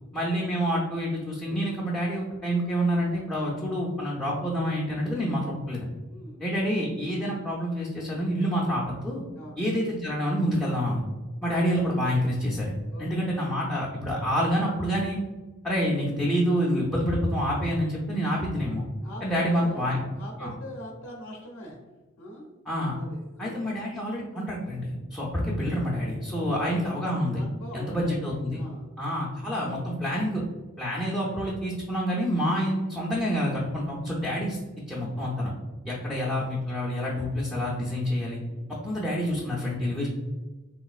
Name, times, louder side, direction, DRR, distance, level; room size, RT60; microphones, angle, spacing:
voice 1, 0.1-5.9 6.4-9.2 9.6-11.0 11.4-15.2 15.6-18.8 19.2-20.0 20.4-20.5 22.7-23.0 23.4-27.4 27.7-28.6 29.0-30.4 30.8-34.6 34.9-35.5 35.8-38.4 38.8-40.1, equal, 5° left, -7 dB, 0.4 m, -27 dB
voice 2, 6.1-6.4 9.3-9.7 12.9-13.3 19.0-21.8 22.2-22.5 22.9-23.6 26.3-26.9 27.3-28.2 28.5-28.9 35.9-36.2 38.5-38.8, equal, 65° left, -2 dB, 0.5 m, -43 dB
3.3 x 3.0 x 2.3 m, 1.2 s
head